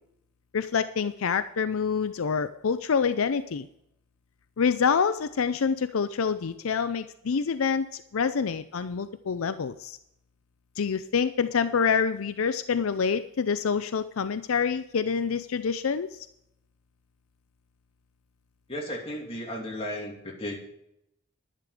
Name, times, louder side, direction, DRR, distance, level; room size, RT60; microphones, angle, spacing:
voice 1, 0.5-3.7 4.6-10.0 10.8-16.3, left 6 dB, 80° left, 12 dB, 0.5 m, -27 dB
voice 2, 18.7-20.6, equal, 25° left, -2 dB, 2.8 m, -35 dB
11.0 x 10.5 x 5.0 m, 0.79 s
head